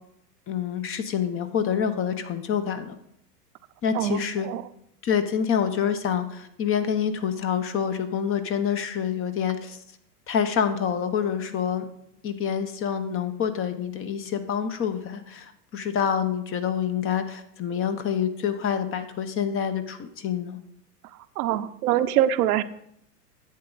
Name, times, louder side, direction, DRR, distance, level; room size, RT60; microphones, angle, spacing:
voice 1, 0.5-2.9 3.8-4.5 5.0-9.8 10.3-11.9 12.2-20.6, left 8 dB, 25° left, 10 dB, 0.9 m, -27 dB
voice 2, 3.9-4.6 21.4-22.6, right 11 dB, 65° right, 12 dB, 0.8 m, -24 dB
10.5 x 8.0 x 4.0 m, 0.74 s
hypercardioid pair, 105°, 48 cm